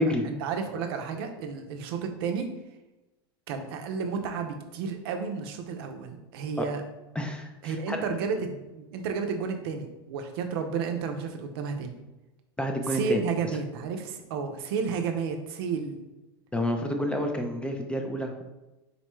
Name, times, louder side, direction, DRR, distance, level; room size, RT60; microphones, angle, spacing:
voice 1, 0.0-2.5 3.5-6.8 7.6-11.9 12.9-16.0, right 5 dB, 70° right, 5 dB, 0.5 m, -32 dB
voice 2, 7.2-8.0 12.6-13.2 16.5-18.5, equal, 10° left, 4 dB, 0.4 m, -29 dB
4.0 x 2.1 x 3.0 m, 1.0 s
supercardioid pair, 110°, 13 cm